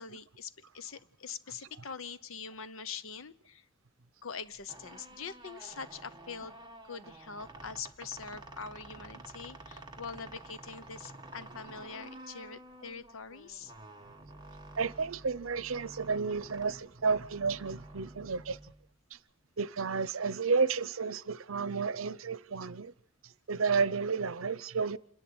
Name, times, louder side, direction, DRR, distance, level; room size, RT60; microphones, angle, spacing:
voice 1, 0.0-3.7 4.2-6.6 6.9-13.7, left 5 dB, 80° left, 1.0 m, -44 dB
sound 1, 4.6-19.1, right 2 dB, 20° right, 1.4 m, -50 dB
voice 2, 14.8-18.6 19.1-19.2 19.6-22.9 23.2-25.0, right 5 dB, 85° right, 0.8 m, -31 dB
27.5 x 11.0 x 8.8 m
head